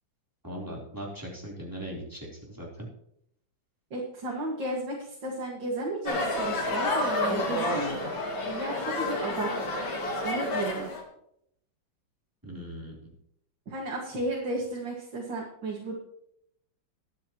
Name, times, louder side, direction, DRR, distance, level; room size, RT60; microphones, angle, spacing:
voice 1, 0.4-2.9 12.4-13.0, equal, 10° right, -4 dB, 3.8 m, -39 dB
voice 2, 3.9-8.1 8.5-9.5 10.2-10.9 13.7-16.0, right 1 dB, 75° right, -2 dB, 2.8 m, -33 dB
sound 1, 6.1-11.0, left 2 dB, 85° left, 3.1 m, -29 dB
22.0 x 8.5 x 3.1 m, 0.73 s
omnidirectional pair, 2.1 m